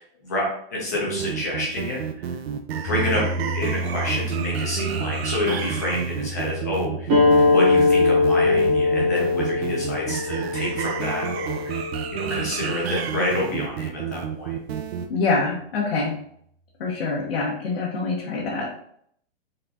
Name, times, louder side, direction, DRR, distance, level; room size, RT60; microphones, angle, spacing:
voice 1, 0.0-2.3 2.8-3.2 3.5-11.8 12.1-14.6, left 1 dB, 15° left, -3 dB, 0.5 m, -28 dB
sound 1, 0.9-15.1, right 8 dB, 80° right, 0.5 m, -30 dB
sound 2, 2.8-13.1, right 1 dB, 35° left, 1.6 m, -34 dB
sound 3, 7.1-12.2, left 3 dB, 15° right, 0.7 m, -21 dB
voice 2, 15.1-16.1 16.8-18.7, left 3 dB, 65° left, -4 dB, 1.1 m, -25 dB
3.9 x 3.4 x 2.7 m, 0.67 s
hypercardioid pair, 180°, 31 cm